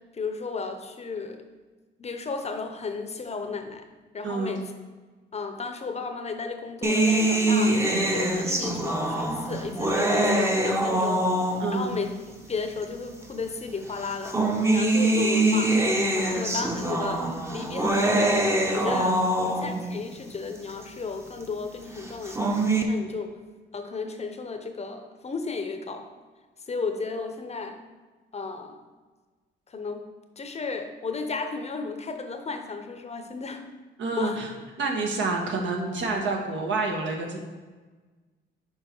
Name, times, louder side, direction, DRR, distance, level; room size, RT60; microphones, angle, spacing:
voice 1, 0.1-1.4 2.0-3.8 4.1-4.6 5.3-7.7 8.1-11.3 11.7-12.1 12.4-14.4 14.7-15.7 16.1-22.6 22.9-23.3 23.7-26.1 26.7-27.8 28.3-28.8 29.7-30.1 30.4-33.6 34.2-34.4, left 4 dB, 35° left, 6 dB, 0.7 m, -34 dB
voice 2, 4.2-4.6 11.6-12.0 19.0-19.3 34.0-34.5 34.8-37.4, right 3 dB, 70° right, 1 dB, 1.3 m, -28 dB
sound 1, 6.8-11.9 12.8-12.9 14.0-19.9 22.1-22.8, right 1 dB, 15° right, 0.8 m, -24 dB
6.5 x 4.7 x 4.5 m, 1.3 s
cardioid pair, 90°, 20 cm